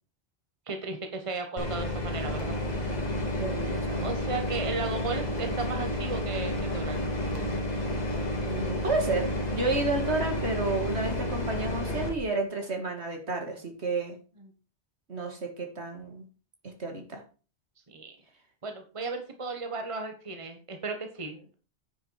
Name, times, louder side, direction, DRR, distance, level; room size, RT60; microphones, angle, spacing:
voice 1, 0.7-2.6 4.0-7.0 14.4-14.5 17.9-18.1 18.6-21.5, right 3 dB, 30° right, 6 dB, 1.4 m, -35 dB
sound 1, 1.6-12.1, left 1 dB, 40° left, 2.2 m, -31 dB
voice 2, 3.4-4.1 8.4-14.2 15.1-16.2 16.6-17.2, right 3 dB, 75° right, 3 dB, 2.5 m, -31 dB
9.7 x 6.6 x 4.8 m, 0.36 s
omnidirectional pair, 1.1 m